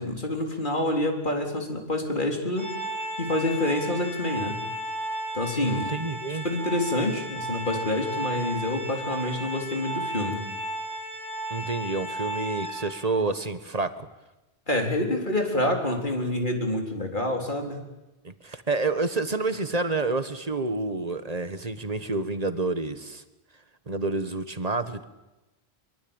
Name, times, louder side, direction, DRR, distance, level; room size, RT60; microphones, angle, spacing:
voice 1, 0.0-2.7 3.2-4.6 5.3-5.9 6.4-10.4 14.7-17.8, left 1 dB, 50° left, 3 dB, 4.1 m, -27 dB
Organ, 2.6-13.3, right 1 dB, 85° right, 3.7 m, -34 dB
voice 2, 5.6-6.4 11.5-14.1 18.2-23.2 23.9-25.0, right 3 dB, 35° right, 11 dB, 1.5 m, -29 dB
23.5 x 23.0 x 8.9 m, 1.0 s
omnidirectional pair, 1.1 m